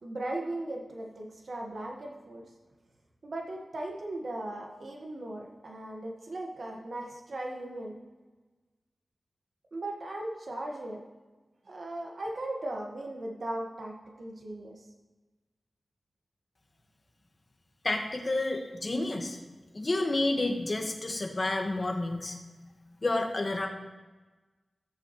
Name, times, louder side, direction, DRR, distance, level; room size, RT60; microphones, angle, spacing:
voice 1, 0.0-2.5 3.2-8.0 9.7-11.0 11.7-14.8, right 1 dB, 65° right, 0 dB, 1.7 m, -38 dB
voice 2, 17.8-19.4 19.7-22.4 23.0-23.7, left 2 dB, 45° left, 3 dB, 1.7 m, -30 dB
15.0 x 7.1 x 3.2 m, 1.2 s
cardioid pair, 50°, 0 cm